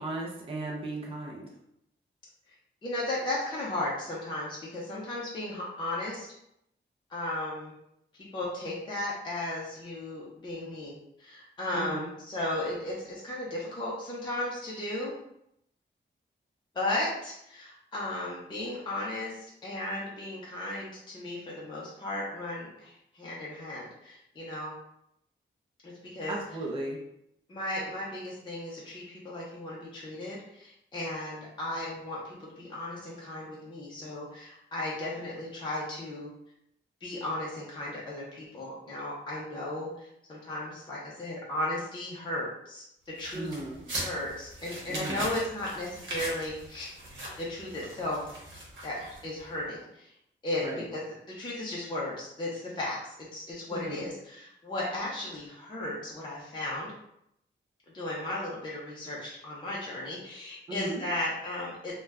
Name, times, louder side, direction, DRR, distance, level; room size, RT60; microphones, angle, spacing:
voice 1, 0.0-1.5 11.7-12.1 26.3-27.0 43.3-43.8 44.9-45.2 50.6-50.8 53.7-54.1 60.7-61.0, right 2 dB, 25° right, -3 dB, 0.5 m, -36 dB
voice 2, 2.8-6.3 7.1-7.7 8.3-15.1 16.7-24.7 25.8-26.3 27.5-36.3 37.0-43.5 44.0-46.9 47.4-48.2 48.8-50.1 50.4-50.7 50.9-56.9 57.9-61.9, left 1 dB, 20° left, -6 dB, 0.6 m, -35 dB
sound 1, 43.2-49.4, right 1 dB, 70° right, 0.9 m, -40 dB
2.5 x 2.2 x 3.3 m, 0.77 s
wide cardioid pair, 180°, 21 cm